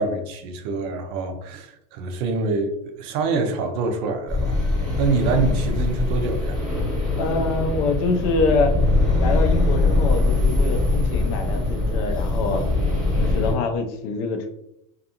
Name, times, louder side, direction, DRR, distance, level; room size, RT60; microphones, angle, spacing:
voice 1, 0.0-4.6 5.0-6.6, right 4 dB, 50° right, 5 dB, 0.5 m, -25 dB
sound 1, 4.3-13.5, left 2 dB, 5° left, 0.9 m, -22 dB
voice 2, 7.2-8.7 9.2-12.6 13.2-14.5, left 3 dB, 45° left, 5 dB, 0.4 m, -25 dB
2.5 x 2.4 x 2.7 m, 0.76 s
supercardioid pair, 155°, 17 cm